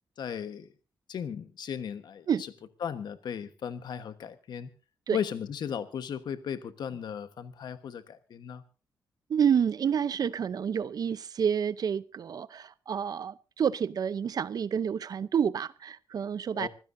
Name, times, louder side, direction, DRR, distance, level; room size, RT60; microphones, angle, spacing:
voice 1, 0.2-0.7 1.1-2.5 2.8-4.7 5.1-8.6 16.5-16.7, left 8 dB, 70° left, 1.2 m, -36 dB
voice 2, 9.3-16.7, right 7 dB, 60° right, 0.7 m, -29 dB
26.0 x 15.5 x 2.7 m
cardioid pair, 115°, 8 cm